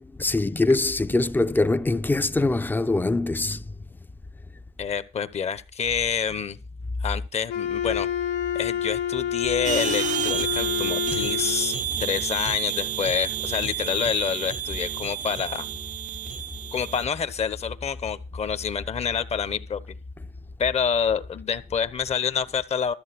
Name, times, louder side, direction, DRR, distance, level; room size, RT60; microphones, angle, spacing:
voice 1, 0.0-3.6, left 2 dB, 10° left, 0.6 m, -23 dB
voice 2, 4.8-6.6 7.0-8.1 8.5-15.7 16.7-20.0 20.6-22.9, left 7 dB, 40° left, 1.0 m, -27 dB
Wind instrument woodwind instrument, 7.5-11.8, left 10 dB, 85° left, 1.0 m, -28 dB
sound 1, 9.6-17.0, right 9 dB, 50° right, 0.7 m, -30 dB
13.5 x 7.6 x 5.9 m
cardioid pair, 110°, 17 cm